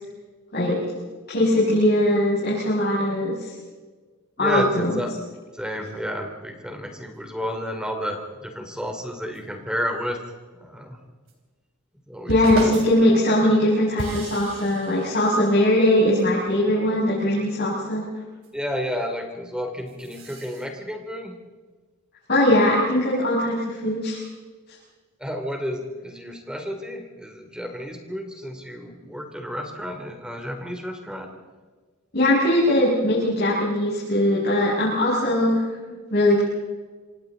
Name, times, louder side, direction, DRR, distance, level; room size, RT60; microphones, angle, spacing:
voice 1, 1.3-3.5 4.4-5.0 12.3-18.0 22.3-24.2 32.1-36.4, left 1 dB, 45° left, -7 dB, 6.3 m, -20 dB
voice 2, 4.4-5.1 5.5-10.2 10.5-11.0 12.1-12.7 18.5-21.3 25.2-31.3, equal, 5° right, 3 dB, 2.9 m, -31 dB
sound 1, 9.3-9.4 11.3-11.4 12.3-13.1 14.0-16.2 18.4-18.5 19.9-20.7, right 1 dB, 60° right, 3.9 m, -34 dB
27.0 x 26.0 x 4.0 m, 1.4 s
head